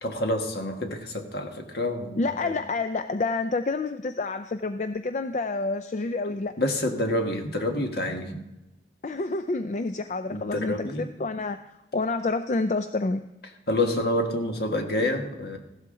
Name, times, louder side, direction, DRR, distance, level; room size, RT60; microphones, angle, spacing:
voice 1, 0.0-2.5 6.6-8.4 10.3-11.1 13.7-15.6, left 1 dB, 60° left, 4 dB, 1.5 m, -28 dB
voice 2, 2.2-6.5 9.0-11.6 11.9-13.2, left 3 dB, 40° left, 10 dB, 0.4 m, -28 dB
15.5 x 12.5 x 3.8 m, 0.95 s
head